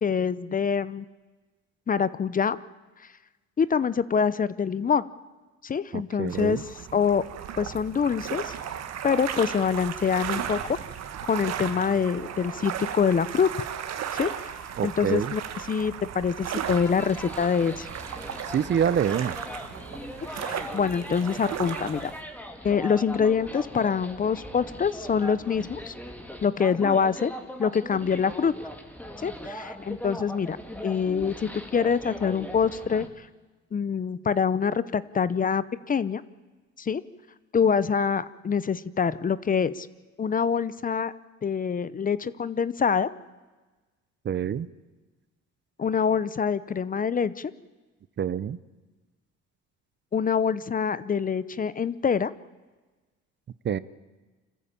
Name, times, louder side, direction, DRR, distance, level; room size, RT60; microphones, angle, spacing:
voice 1, 0.0-1.0 1.9-2.6 3.6-5.0 5.6-6.6 6.9-7.2 7.6-8.5 9.0-10.8 11.2-13.7 14.1-14.3 14.8-15.4 15.7-17.9 20.3-22.1 22.6-25.9 26.4-27.3 27.6-28.5 29.2-30.6 30.8-33.1 33.7-36.2 36.8-37.0 37.5-39.9 40.2-41.1 41.4-43.1 45.8-47.5 50.1-52.3, left 6 dB, 30° left, 17 dB, 0.7 m, -25 dB
voice 2, 5.9-6.6 14.8-15.3 18.5-19.4 44.2-44.7 48.2-48.6 53.6-53.8, right 8 dB, 40° right, 18 dB, 0.7 m, -26 dB
sound 1, 6.3-22.2, right 9 dB, 60° right, 1.8 m, -35 dB
sound 2, 16.6-33.1, equal, 5° left, 2.3 m, -40 dB
26.0 x 14.0 x 8.8 m, 1.2 s
cardioid pair, 105°, 30 cm